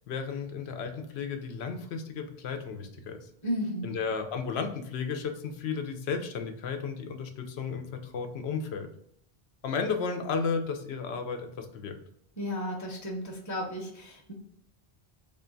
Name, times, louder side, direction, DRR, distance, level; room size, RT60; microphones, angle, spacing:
voice 1, 0.1-3.2 3.8-8.9 9.6-12.0, left 5 dB, 90° left, 6 dB, 0.8 m, -33 dB
voice 2, 3.4-3.9 12.4-14.3, equal, 20° left, 0 dB, 0.6 m, -34 dB
3.6 x 2.2 x 3.8 m, 0.70 s
omnidirectional pair, 1.0 m